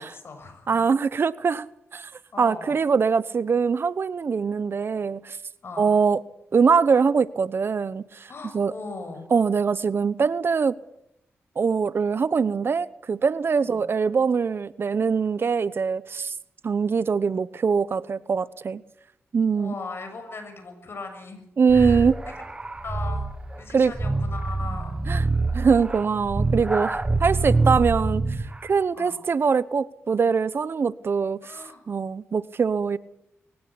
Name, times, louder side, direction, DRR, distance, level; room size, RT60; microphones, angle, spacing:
voice 1, 0.0-0.7 2.3-2.8 5.6-5.9 8.3-9.3 13.6-13.8 19.5-21.4 21.7-22.1 22.8-23.2 23.6-25.0 26.7-26.9 28.9-29.1 31.4-31.8, left 3 dB, 55° left, 6.9 m, -38 dB
voice 2, 0.7-2.1 2.4-5.4 5.8-6.2 6.5-8.3 8.5-8.7 9.3-10.7 11.6-16.3 16.6-18.8 19.3-19.7 21.6-22.1 23.7-23.9 25.1-25.2 25.5-28.2 28.6-31.5 31.9-33.0, right 5 dB, 50° right, 0.9 m, -23 dB
sound 1, 21.7-28.6, right 3 dB, 20° right, 1.6 m, -26 dB
22.5 x 17.0 x 8.4 m
wide cardioid pair, 100°, 5 cm